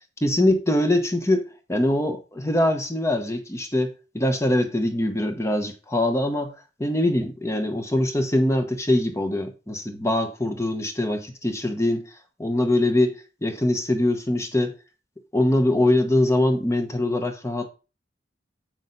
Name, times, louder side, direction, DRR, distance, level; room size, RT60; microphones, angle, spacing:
voice 1, 0.2-6.5 6.8-12.1 12.4-14.7 15.3-17.7, left 1 dB, 15° left, 1.1 m, -23 dB
7.6 x 6.4 x 4.0 m
head